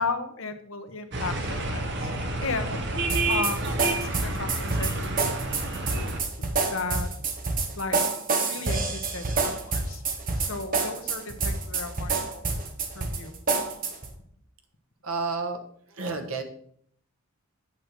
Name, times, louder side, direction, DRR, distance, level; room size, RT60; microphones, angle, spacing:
voice 1, 0.0-2.1 2.4-2.8 3.3-5.3 5.9-7.1 7.8-8.0 8.5-10.0 10.4-12.5 12.9-13.3, left 4 dB, 70° left, 8 dB, 1.0 m, -35 dB
sound 1, 1.1-6.2, right 2 dB, 55° right, 1.3 m, -30 dB
sound 2, 3.1-14.1, right 4 dB, 40° right, 1.1 m, -28 dB
voice 2, 15.0-15.6 15.9-16.4, right 4 dB, 80° right, 6 dB, 1.3 m, -31 dB
8.4 x 6.7 x 4.6 m, 0.63 s
head